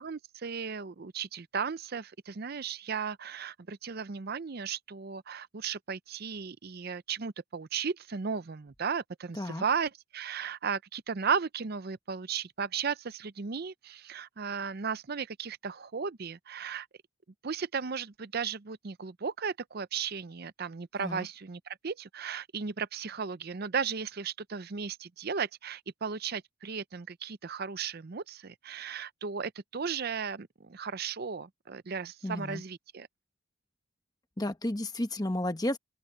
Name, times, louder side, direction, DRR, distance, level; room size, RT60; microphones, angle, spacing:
voice 1, 0.0-16.9 17.4-33.1, right 6 dB, 45° right, 0.6 m, -35 dB
voice 2, 32.2-32.6 34.4-35.8, left 1 dB, 20° left, 1.1 m, -32 dB
open air
head